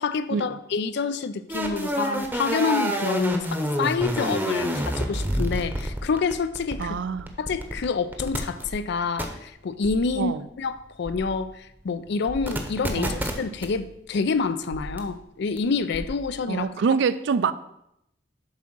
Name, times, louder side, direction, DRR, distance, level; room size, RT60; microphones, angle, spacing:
voice 1, 0.0-7.0 7.4-16.7, left 4 dB, 60° left, 0.4 m, -27 dB
sound 1, 1.5-7.8 8.1-8.7 9.2-9.3 9.8-10.1 11.1-11.3 12.3-13.7 14.7-15.0 15.6-15.7 15.9-16.2, equal, 10° right, 0.8 m, -28 dB
voice 2, 6.8-7.3 10.2-10.5 12.9-13.2 16.5-17.5, right 5 dB, 65° right, 0.4 m, -26 dB
7.4 x 3.6 x 6.0 m
head